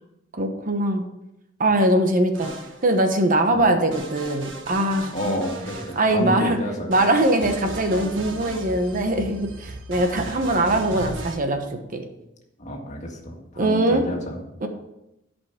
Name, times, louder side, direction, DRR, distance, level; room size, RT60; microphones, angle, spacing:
voice 1, 0.3-1.0 1.6-2.5 2.8-5.1 6.0-6.6 6.9-11.6 11.9-12.0 13.6-14.0 14.6-14.7, right 1 dB, 45° right, 5 dB, 1.1 m, -21 dB
sound 1, 2.3-3.2 3.9-6.4 6.9-11.4, right 2 dB, 70° right, 1.7 m, -36 dB
voice 2, 5.1-6.9 12.6-14.4, equal, 40° left, 0 dB, 2.0 m, -30 dB
12.0 x 5.4 x 5.8 m, 0.89 s
head